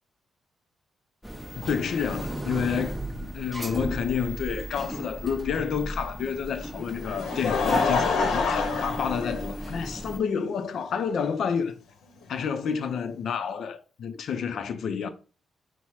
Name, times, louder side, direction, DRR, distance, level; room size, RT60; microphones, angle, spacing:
sound 1, 1.2-10.2, equal, ahead, 0.6 m, -35 dB
voice 1, 1.6-11.8 12.3-15.1, left 7 dB, 60° left, 0.5 m, -29 dB
Laughter, 6.8-10.0 10.8-10.9 12.4-12.5, left 4 dB, 90° left, 0.8 m, -27 dB
5.6 x 2.0 x 4.6 m
cardioid pair, 140°, 0 cm